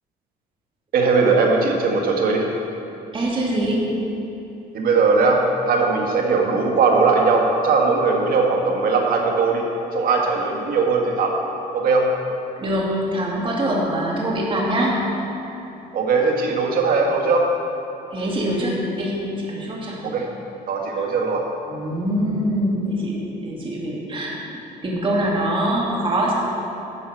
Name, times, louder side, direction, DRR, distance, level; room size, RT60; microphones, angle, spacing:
voice 1, 0.9-2.5 4.7-9.6 9.9-11.3 11.7-12.1 15.9-17.5 20.0-20.3 20.7-21.4, right 4 dB, 60° right, 1 dB, 1.8 m, -19 dB
voice 2, 3.1-3.8 12.6-15.0 18.1-20.0 21.0-21.1 21.7-24.3 24.8-26.3, right 1 dB, 30° right, -4 dB, 2.4 m, -23 dB
11.5 x 5.6 x 7.6 m, 3.0 s
cardioid pair, 110°, 17 cm